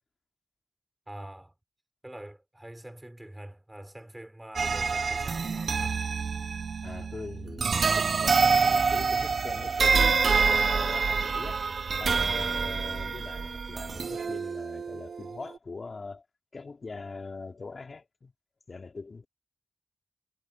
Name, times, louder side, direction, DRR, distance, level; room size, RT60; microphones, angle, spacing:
voice 1, 1.1-1.5 2.0-6.0, right 1 dB, 10° right, 4.2 m, -45 dB
sound 1, 4.6-15.6, right 5 dB, 60° right, 0.6 m, -27 dB
voice 2, 6.8-11.6 12.0-16.2 16.5-18.3 18.7-19.3, left 4 dB, 45° left, 2.8 m, -41 dB
wide cardioid pair, 135°, 0 cm